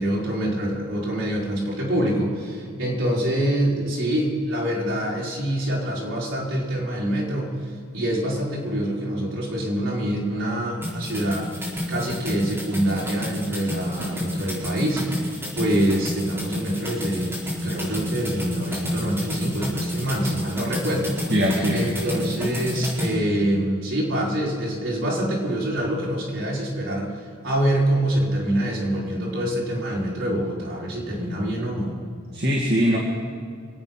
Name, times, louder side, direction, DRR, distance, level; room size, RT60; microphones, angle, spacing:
voice 1, 0.0-7.5 7.9-11.5 11.9-15.0 15.5-17.4 17.6-21.1 21.7-32.0, right 1 dB, 65° right, -6 dB, 5.3 m, -25 dB
sound 1, 10.8-23.1, equal, 10° right, 4.2 m, -30 dB
voice 2, 21.3-21.8 32.3-33.0, equal, 45° right, -2 dB, 2.1 m, -21 dB
26.0 x 8.8 x 5.9 m, 2.2 s
head